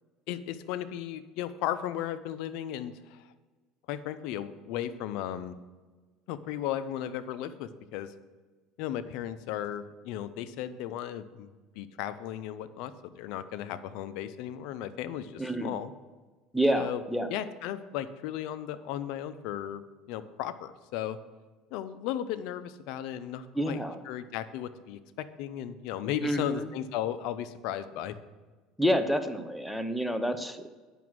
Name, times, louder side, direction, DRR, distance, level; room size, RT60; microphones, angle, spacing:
voice 1, 0.3-3.2 3.9-5.5 6.3-8.1 8.8-11.5 11.7-15.9 16.7-17.0 17.3-19.8 20.1-21.2 21.7-28.2, left 11 dB, 70° left, 13 dB, 0.6 m, -35 dB
voice 2, 15.4-15.7 16.5-17.3 23.5-24.0 26.2-26.7 28.8-30.7, equal, ahead, 8 dB, 0.8 m, -28 dB
9.1 x 6.1 x 6.2 m, 1.3 s
supercardioid pair, 105°, 0 cm